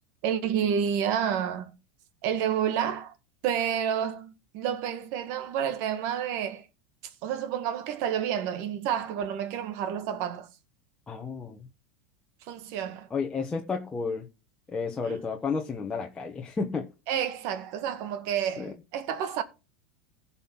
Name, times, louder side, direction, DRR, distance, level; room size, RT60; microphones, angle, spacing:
voice 1, 0.2-1.7 2.2-3.1 3.4-6.7 7.2-10.5 12.5-13.1 15.0-15.2 17.1-19.4, right 9 dB, 50° right, 1.7 m, -29 dB
voice 2, 11.1-11.7 13.1-14.3 14.7-17.2 18.6-18.7, left 5 dB, 15° left, 1.3 m, -32 dB
15.5 x 5.7 x 3.9 m
supercardioid pair, 145°, 6 cm